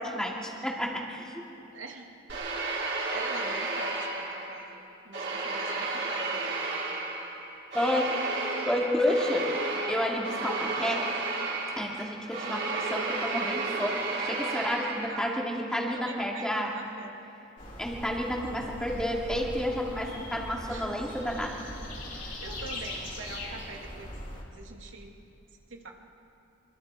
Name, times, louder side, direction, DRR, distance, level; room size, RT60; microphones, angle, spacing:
voice 1, 0.0-1.4 5.5-5.7 7.7-8.1 8.7-9.5 9.9-11.1 11.8-16.7 17.8-21.6, left 1 dB, 5° left, -2 dB, 2.5 m, -30 dB
voice 2, 1.7-2.1 2.7-6.8 15.1-15.5 15.9-17.1 20.7-20.9 22.4-24.1 24.5-25.1 25.7-25.9, right 3 dB, 90° right, 0 dB, 2.9 m, -44 dB
sound 1, 2.3-4.7 5.1-15.4, right 3 dB, 60° right, 5.0 m, -32 dB
sound 2, 17.6-24.4, left 1 dB, 45° left, 3.7 m, -40 dB
26.0 x 24.5 x 4.9 m, 2.9 s
head